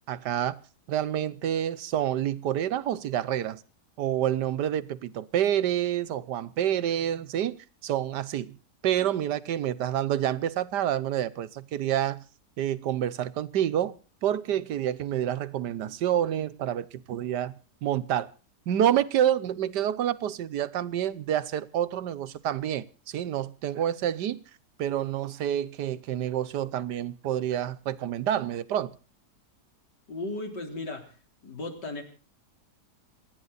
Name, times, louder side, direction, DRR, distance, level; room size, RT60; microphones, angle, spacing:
voice 1, 0.1-0.6 0.9-3.6 4.0-7.6 7.8-8.6 8.8-12.2 12.6-13.9 14.2-17.5 17.8-18.3 18.7-24.4 24.8-28.9, right 10 dB, 80° right, 1.5 m, -28 dB
voice 2, 30.1-31.0 31.4-32.0, left 2 dB, 80° left, 4.4 m, -35 dB
28.0 x 9.9 x 4.0 m
omnidirectional pair, 1.8 m